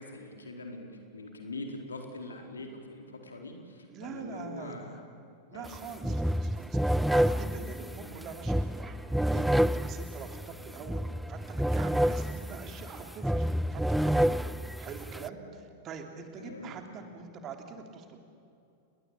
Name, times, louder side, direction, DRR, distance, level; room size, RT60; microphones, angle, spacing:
voice 1, 0.0-5.1 5.5-5.7 10.8-11.0 16.4-16.7, left 2 dB, 75° left, 3 dB, 4.1 m, -43 dB
voice 2, 3.9-5.0 5.5-9.0 9.3-14.3 14.8-18.2, right 6 dB, 30° right, 5 dB, 3.3 m, -44 dB
sound 1, 5.6-5.8 6.0-15.3, equal, ahead, 0.6 m, -29 dB
29.0 x 21.5 x 8.6 m, 2.6 s
figure-of-eight pair, 90°, 0 cm